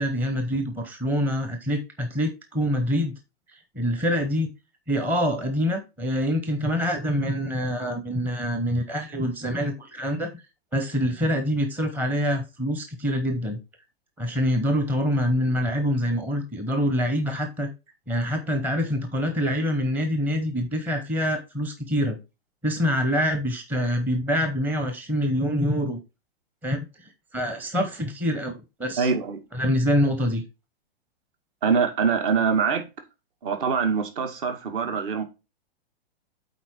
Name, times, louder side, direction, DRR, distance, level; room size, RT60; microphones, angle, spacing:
voice 1, 0.0-3.1 3.5-4.5 4.9-10.3 10.7-13.6 14.2-17.7 18.1-22.2 22.6-26.0 26.6-28.5 28.8-29.1 29.5-30.4, equal, 5° right, 0.7 m, -25 dB
voice 2, 29.0-29.4 31.6-32.9 33.4-35.2, right 6 dB, 55° right, 2.1 m, -24 dB
8.1 x 4.2 x 4.5 m
hypercardioid pair, 135°, 31 cm